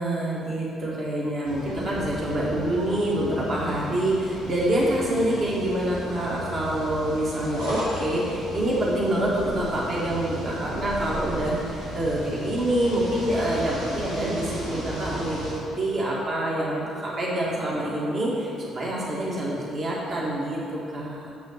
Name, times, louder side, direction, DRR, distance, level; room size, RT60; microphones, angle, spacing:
voice 1, 0.0-21.3, right 1 dB, 45° right, -5 dB, 2.0 m, -26 dB
sound 1, 1.4-15.5, equal, 85° right, 2.1 m, -35 dB
7.0 x 6.2 x 6.6 m, 2.5 s
hypercardioid pair, 45°, 0 cm